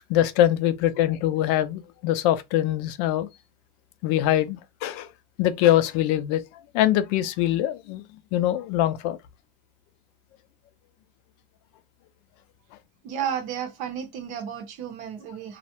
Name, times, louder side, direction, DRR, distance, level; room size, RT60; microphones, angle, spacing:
voice 1, 0.1-3.3 4.0-5.1 5.4-6.4 6.7-8.0 8.3-9.2, left 12 dB, 70° left, 0.4 m, -23 dB
voice 2, 13.0-15.6, right 8 dB, 55° right, 0.7 m, -32 dB
2.3 x 2.0 x 2.8 m
cardioid pair, 145°, 15 cm